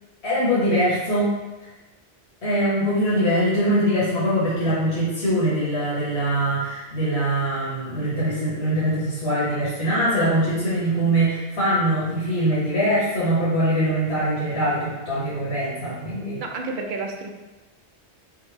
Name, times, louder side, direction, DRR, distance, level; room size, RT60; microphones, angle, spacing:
voice 1, 0.2-1.4 2.4-16.4, right 1 dB, 70° left, -10 dB, 1.4 m, -22 dB
voice 2, 16.4-17.3, right 3 dB, 55° right, 2 dB, 0.6 m, -30 dB
5.0 x 2.1 x 3.2 m, 1.1 s
omnidirectional pair, 1.1 m